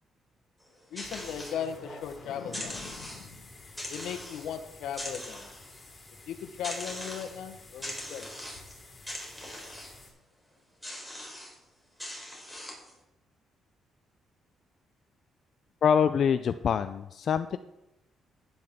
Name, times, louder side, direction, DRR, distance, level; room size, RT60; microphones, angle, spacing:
sound 1, 0.6-2.1 2.4-3.4 3.8-4.6 4.9-5.9 6.6-7.4 7.8-8.8 9.1-10.0 10.8-11.6 12.0-12.9, left 1 dB, ahead, 4.2 m, -41 dB
voice 1, 0.9-3.5 3.9-5.5 6.3-8.3, left 8 dB, 85° left, 7 dB, 1.1 m, -38 dB
sound 2, 1.0-10.1, left 2 dB, 30° left, 4.2 m, -51 dB
voice 2, 15.8-17.6, left 7 dB, 60° left, 10 dB, 0.4 m, -25 dB
11.5 x 9.7 x 3.7 m, 0.89 s
cardioid pair, 90°, 0 cm